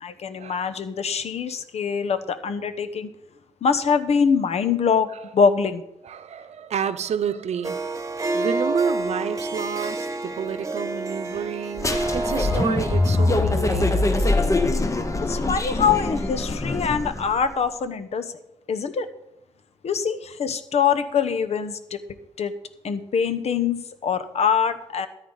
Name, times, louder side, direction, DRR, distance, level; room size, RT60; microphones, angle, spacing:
voice 1, 0.0-3.1 3.6-5.1 5.3-5.8 15.2-18.3 18.7-19.1 19.8-22.0 22.4-22.5 22.8-25.1, left 6 dB, 70° left, 11 dB, 1.0 m, -23 dB
voice 2, 6.0-8.0 8.3-14.3, right 8 dB, 75° right, 12 dB, 0.8 m, -30 dB
Harp, 7.6-15.1, right 2 dB, 30° right, 1.3 m, -30 dB
sound 1, 11.8-17.4, left 2 dB, 30° left, 1.1 m, -23 dB
13.5 x 10.0 x 4.0 m, 0.84 s
cardioid pair, 75°, 11 cm